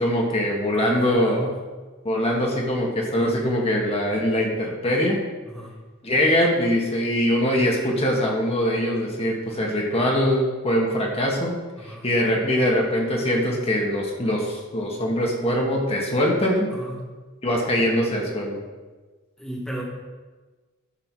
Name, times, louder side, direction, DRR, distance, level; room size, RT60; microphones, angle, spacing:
voice 1, 0.0-1.5 2.0-5.2 6.0-11.6 11.8-16.7 17.4-18.6, equal, 30° left, -1 dB, 1.8 m, -22 dB
voice 2, 0.7-1.6 5.4-5.7 11.8-12.0 16.7-17.1 19.4-19.8, equal, 5° left, -4 dB, 1.5 m, -34 dB
11.5 x 6.5 x 4.8 m, 1.3 s
head